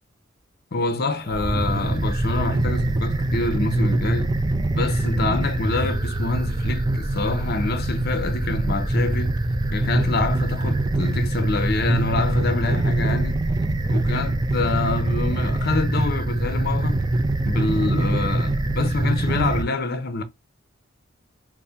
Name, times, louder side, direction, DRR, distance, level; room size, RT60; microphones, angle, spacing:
voice 1, 0.7-4.3 4.7-9.3 9.7-13.4 13.9-17.0 17.4-20.2, left 3 dB, 50° left, 0.6 m, -26 dB
sound 1, 1.3-19.6, right 2 dB, 20° right, 0.4 m, -23 dB
4.1 x 2.1 x 3.4 m
head